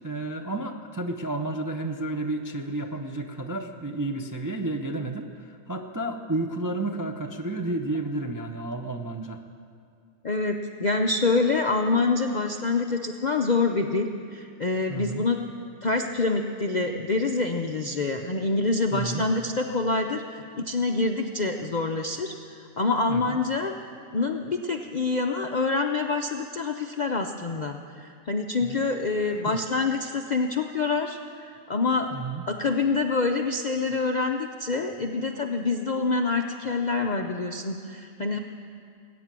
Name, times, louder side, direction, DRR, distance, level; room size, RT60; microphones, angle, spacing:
voice 1, 0.0-9.4 14.9-15.3 18.9-19.2 23.1-23.4 28.6-28.8 29.2-29.6 32.1-32.4, right 2 dB, 25° right, 2 dB, 0.4 m, -31 dB
voice 2, 10.2-15.4 15.8-23.7 24.1-32.1 32.5-38.4, left 3 dB, 55° left, 4 dB, 0.5 m, -26 dB
19.5 x 9.4 x 7.5 m, 2.3 s
omnidirectional pair, 1.5 m